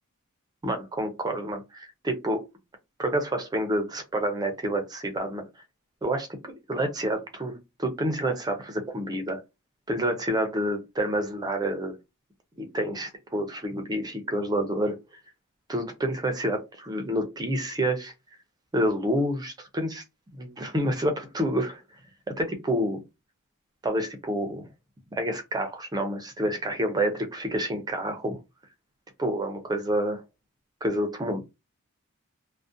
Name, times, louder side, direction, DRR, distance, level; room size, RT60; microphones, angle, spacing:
voice 1, 0.6-2.4 3.0-5.4 6.0-9.4 9.9-11.9 12.6-15.0 15.7-18.1 18.7-20.0 20.4-21.8 22.3-23.0 23.8-24.7 25.1-28.4 29.2-30.2 30.8-31.4, right 1 dB, 20° right, 0.4 m, -28 dB
2.4 x 2.1 x 2.5 m
head